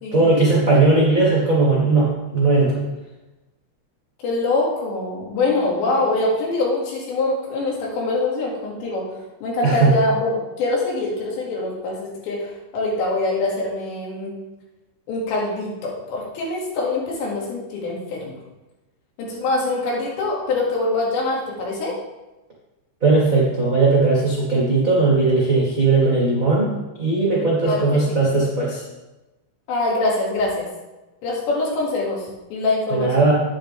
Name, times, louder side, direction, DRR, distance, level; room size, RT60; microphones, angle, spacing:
voice 1, 0.1-2.8 9.6-9.9 23.0-26.7 27.0-28.8 32.9-33.3, right 3 dB, 80° right, -5 dB, 0.7 m, -18 dB
voice 2, 4.2-9.0 9.4-14.3 15.1-18.4 19.2-22.0 27.6-28.2 29.7-30.7 31.2-33.3, left 2 dB, 75° left, -3 dB, 4.3 m, -24 dB
9.4 x 9.2 x 3.5 m, 1.0 s
omnidirectional pair, 5.3 m